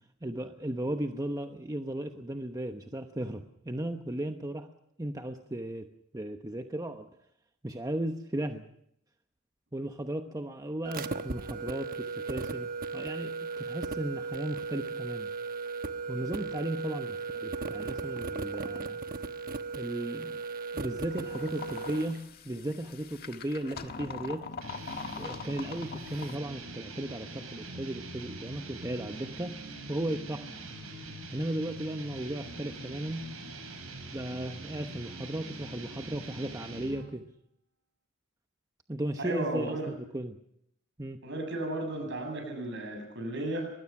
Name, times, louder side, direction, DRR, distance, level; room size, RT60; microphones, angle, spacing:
voice 1, 0.2-4.7 5.0-5.9 6.1-7.1 7.6-8.6 9.7-15.3 16.1-19.0 19.7-20.4 20.7-24.5 25.2-29.6 29.9-30.6 31.3-33.3 34.1-37.3 38.9-40.4 41.0-41.2, right 1 dB, 15° right, 5 dB, 1.0 m, -36 dB
sound 1, 10.8-22.2, right 4 dB, 45° right, 1.1 m, -36 dB
sound 2, 21.1-26.4, left 4 dB, 45° left, 1.5 m, -42 dB
sound 3, 24.6-37.1, right 2 dB, 85° right, 5.6 m, -43 dB
voice 2, 39.2-39.9 41.2-43.7, right 1 dB, 60° right, 5 dB, 8.0 m, -34 dB
24.5 x 20.5 x 6.0 m, 0.74 s
head